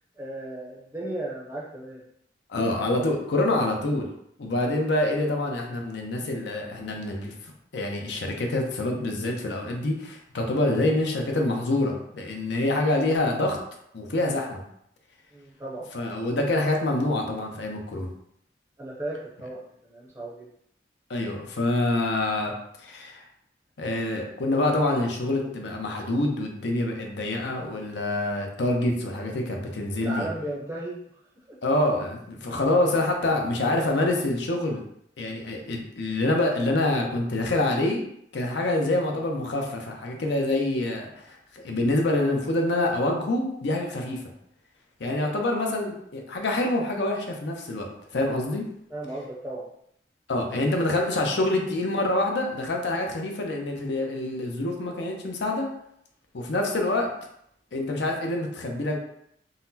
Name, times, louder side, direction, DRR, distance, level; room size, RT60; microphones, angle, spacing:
voice 1, 0.2-2.0 15.3-15.9 16.3-16.4 18.8-20.5 30.0-31.0 31.4-31.6 45.1-45.4 48.9-49.7, right 1 dB, 15° right, -4 dB, 0.5 m, -35 dB
voice 2, 2.5-4.1 4.4-7.3 7.7-13.6 13.9-14.6 15.9-18.1 21.1-22.5 22.8-23.2 23.8-30.3 31.6-34.8 35.2-38.0 38.3-44.2 45.0-48.6 50.3-55.7 56.3-57.1 57.7-59.0, left 2 dB, 70° left, 2 dB, 0.6 m, -26 dB
3.9 x 2.0 x 2.7 m, 0.73 s
head